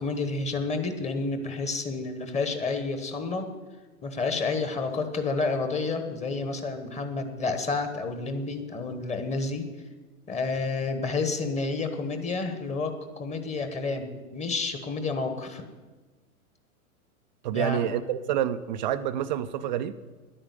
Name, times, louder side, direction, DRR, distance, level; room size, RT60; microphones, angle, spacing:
voice 1, 0.0-3.5 4.0-9.7 10.3-15.6 17.5-17.8, left 3 dB, 15° left, 7 dB, 1.2 m, -30 dB
voice 2, 17.4-20.0, right 10 dB, 35° right, 12 dB, 0.4 m, -28 dB
10.5 x 8.9 x 8.3 m, 1.3 s
figure-of-eight pair, 105°, 45 cm